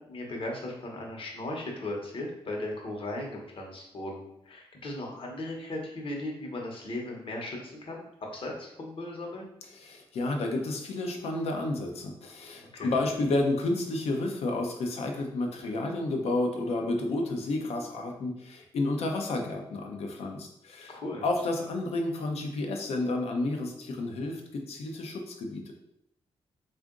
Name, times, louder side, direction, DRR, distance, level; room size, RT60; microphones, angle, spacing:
voice 1, 0.1-9.5 12.7-12.9 20.9-21.2, left 1 dB, 55° left, -1 dB, 1.1 m, -37 dB
voice 2, 9.7-21.0 21.2-25.7, left 2 dB, 75° left, 2 dB, 0.7 m, -31 dB
3.6 x 2.5 x 3.7 m, 0.77 s
cardioid pair, 70°, 11 cm